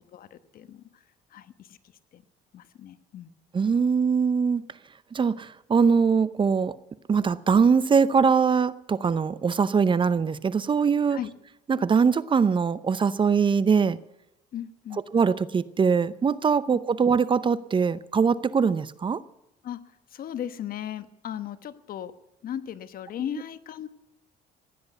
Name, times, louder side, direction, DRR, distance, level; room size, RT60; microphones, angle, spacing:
voice 1, 0.1-0.9 1.3-1.8 2.1-2.2 2.5-3.3 11.1-11.3 14.5-15.0 19.6-19.8 20.1-22.1 22.4-23.9, left 10 dB, 60° left, 12 dB, 1.2 m, -36 dB
voice 2, 3.5-4.6 5.1-6.8 7.1-11.2 11.7-14.0 15.1-19.2, right 6 dB, 30° right, 17 dB, 0.7 m, -22 dB
16.0 x 10.5 x 8.0 m, 0.90 s
cardioid pair, 110°, 17 cm